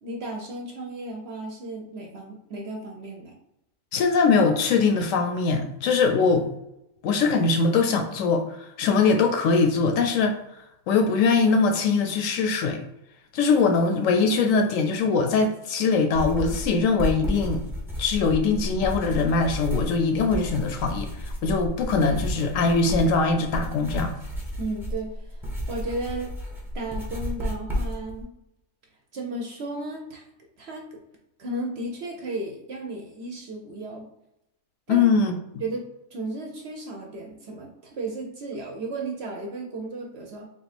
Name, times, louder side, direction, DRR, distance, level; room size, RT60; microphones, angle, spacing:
voice 1, 0.0-3.3 24.6-26.3 26.7-28.3 29.1-30.3 30.6-31.0 31.4-34.1 34.9-35.1 35.6-40.5, right 2 dB, 60° right, 1 dB, 0.7 m, -34 dB
voice 2, 3.9-6.5 7.0-10.4 10.9-12.8 13.3-17.6 18.0-24.1 34.9-35.3, left 4 dB, 70° left, 4 dB, 0.9 m, -22 dB
sound 1, 16.1-28.2, equal, 5° right, 0.5 m, -32 dB
3.5 x 2.5 x 4.1 m, 0.85 s
omnidirectional pair, 1.5 m